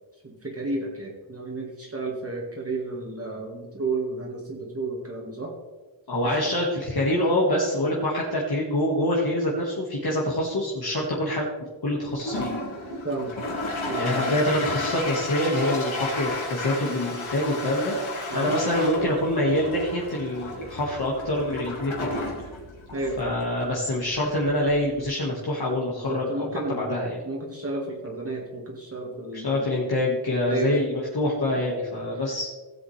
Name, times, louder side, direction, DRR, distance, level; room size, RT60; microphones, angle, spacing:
voice 1, 0.2-5.5 6.2-6.4 13.0-13.4 13.8-14.3 18.3-18.5 22.9-23.4 25.9-27.0 27.2-29.7 30.5-30.8, right 3 dB, 30° right, -2 dB, 1.7 m, -32 dB
voice 2, 6.1-11.5 11.8-12.5 14.0-18.0 18.3-22.2 23.2-27.2 29.3-32.5, left 1 dB, 50° left, -4 dB, 1.8 m, -25 dB
Toilet flush, 12.1-25.2, left 2 dB, 75° left, 2.5 m, -33 dB
16.5 x 7.8 x 3.3 m, 1.3 s
wide cardioid pair, 145°, 48 cm